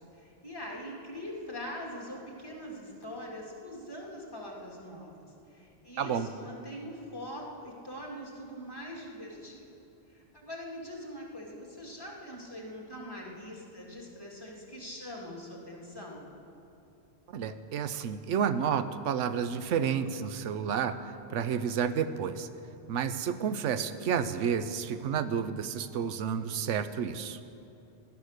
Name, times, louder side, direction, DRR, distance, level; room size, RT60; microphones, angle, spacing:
voice 1, 0.1-9.7 10.1-16.2, equal, 20° left, -3 dB, 2.4 m, -43 dB
voice 2, 17.3-20.9 21.3-22.5 22.9-27.4, right 7 dB, 90° right, 12 dB, 1.0 m, -30 dB
16.5 x 11.0 x 6.6 m, 2.8 s
omnidirectional pair, 1.2 m